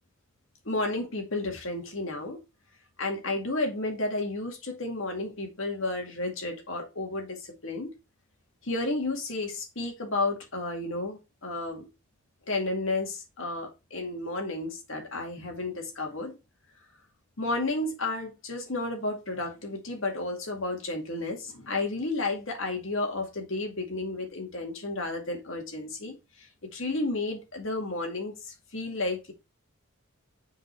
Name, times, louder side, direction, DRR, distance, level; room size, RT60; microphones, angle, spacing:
voice 1, 0.7-2.4 3.0-7.9 8.6-11.9 12.5-16.4 17.4-26.5 26.7-29.3, left 2 dB, 65° left, 2.2 m, -32 dB
6.0 x 5.0 x 4.6 m
head